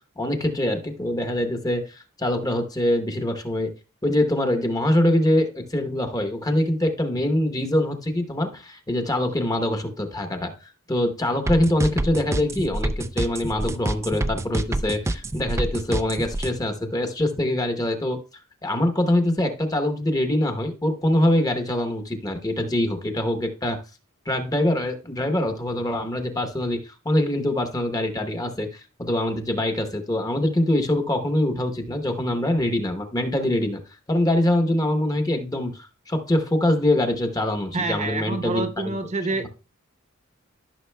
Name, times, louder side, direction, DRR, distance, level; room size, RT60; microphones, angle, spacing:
voice 1, 0.2-3.7 4.0-18.2 18.6-23.8 24.3-33.8 34.1-38.9, left 1 dB, 15° left, 0.9 m, -24 dB
sound 1, 11.5-16.5, right 1 dB, 15° right, 0.3 m, -26 dB
voice 2, 37.7-39.5, right 3 dB, 35° right, 0.8 m, -27 dB
13.0 x 6.1 x 2.2 m
head